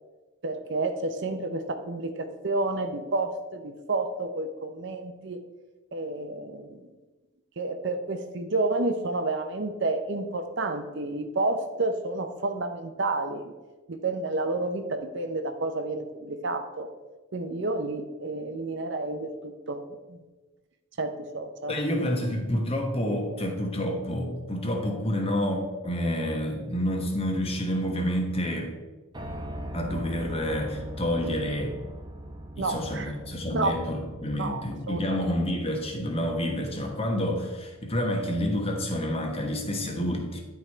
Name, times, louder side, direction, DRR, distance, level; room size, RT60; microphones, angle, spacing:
voice 1, 0.4-5.4 5.9-6.8 7.6-13.5 13.9-16.9 17.3-19.8 20.1-20.2 21.0-21.8 32.6-33.1 33.5-33.8 34.4-35.2, right 2 dB, 55° right, 7 dB, 0.6 m, -30 dB
voice 2, 21.7-28.7 29.7-31.8 32.6-40.4, equal, 25° left, 2 dB, 1.2 m, -29 dB
Piano, 29.1-37.1, right 1 dB, 20° right, 0.7 m, -41 dB
10.0 x 4.7 x 4.3 m, 1.2 s
head